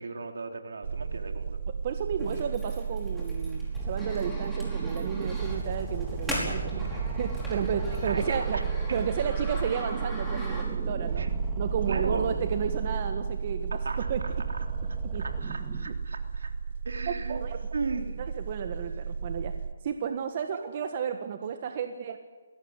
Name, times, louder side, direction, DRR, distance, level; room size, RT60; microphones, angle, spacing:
voice 1, 0.0-1.6 2.2-2.3 6.7-7.1 8.0-9.0 10.5-10.6 11.2-11.3 11.9-12.4 13.7-16.5 16.8-17.4 17.7-18.2, right 4 dB, 75° right, 4 dB, 3.5 m, -37 dB
sound 1, 0.8-19.7, right 5 dB, 60° right, 1.3 m, -34 dB
voice 2, 1.8-6.8 7.2-8.6 8.9-11.3 11.6-14.2 15.0-15.2 17.3-17.6 18.2-19.5 19.8-22.2, right 7 dB, 40° right, 7 dB, 1.6 m, -32 dB
sound 2, 2.2-11.0, equal, ahead, 5.1 m, -41 dB
sound 3, 3.7-15.9, right 5 dB, 20° right, 2.1 m, -37 dB
21.5 x 17.0 x 9.7 m, 1.3 s
hypercardioid pair, 155°, 0 cm